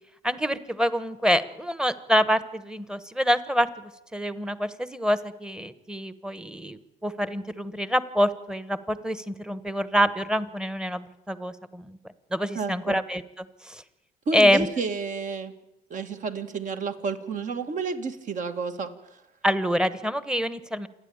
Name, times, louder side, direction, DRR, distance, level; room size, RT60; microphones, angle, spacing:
voice 1, 0.2-12.0 12.3-13.8 14.3-14.7 19.4-20.9, equal, 5° right, 14 dB, 1.2 m, -26 dB
voice 2, 12.5-13.0 14.3-15.5 15.9-18.9, right 4 dB, 50° right, 7 dB, 2.2 m, -30 dB
28.0 x 10.5 x 8.9 m, 0.95 s
cardioid pair, 110°, 17 cm